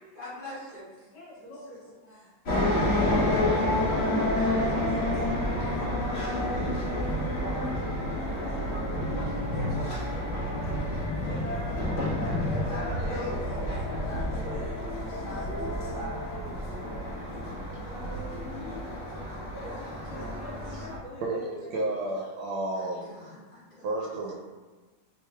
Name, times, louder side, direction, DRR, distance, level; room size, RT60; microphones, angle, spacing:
voice 1, 0.1-1.1 1.4-1.7 2.1-2.8 4.4-4.6 6.8-7.4 9.9-10.3 11.2-13.6 14.2-14.3 14.5-16.8 19.1-21.0 22.7-23.9, left 1 dB, 45° left, -10 dB, 0.7 m, -50 dB
voice 2, 1.1-1.8 2.0-2.3 4.3-5.2 5.8-9.0 9.6-9.8 11.2-11.9 14.5-15.0 15.5-16.6 17.6-19.2 19.6-21.7, equal, 60° left, -7 dB, 1.4 m, -45 dB
sound 1, 2.5-21.0, left 1 dB, 80° left, 0.5 m, -29 dB
voice 3, 21.2-23.0 23.8-24.4, right 2 dB, 80° right, -3 dB, 1.4 m, -31 dB
3.4 x 3.1 x 2.3 m, 1.3 s
omnidirectional pair, 2.3 m